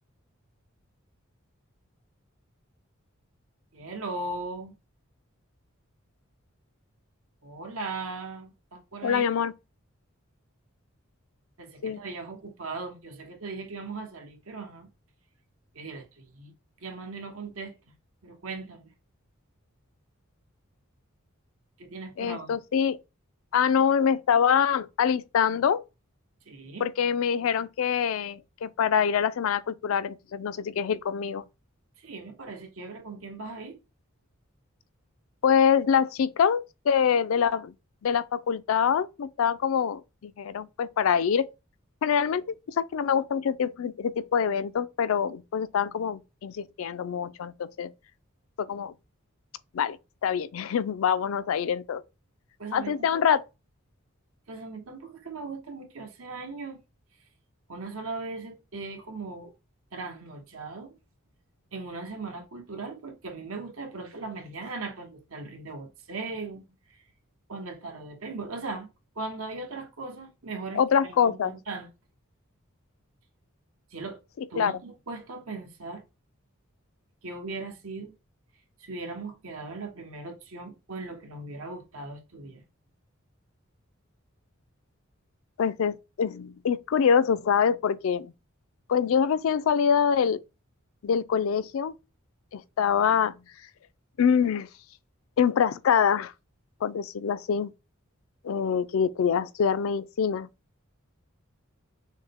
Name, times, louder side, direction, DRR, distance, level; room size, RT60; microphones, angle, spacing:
voice 1, 3.7-4.7 7.4-9.3 11.6-14.9 15.7-16.5 16.8-17.8 18.2-18.9 21.8-22.5 26.5-26.9 32.0-33.8 52.6-53.2 54.5-56.8 57.7-59.5 59.9-61.0 61.7-67.0 67.5-68.9 69.1-71.9 73.9-74.2 74.5-76.0 77.2-78.1 78.8-82.6, right 3 dB, 85° right, 1.1 m, -38 dB
voice 2, 9.0-9.5 11.8-12.0 22.2-23.0 23.5-25.8 26.8-31.4 35.4-37.7 38.0-41.5 42.0-47.9 48.6-48.9 49.7-50.0 50.2-52.0 52.7-53.4 70.7-71.5 74.6-74.8 85.6-88.3 88.9-90.4 91.0-91.9 92.5-93.4 94.2-94.7 95.4-96.3 96.8-97.7 98.4-100.5, left 7 dB, 70° left, 0.4 m, -25 dB
6.3 x 2.1 x 3.5 m
head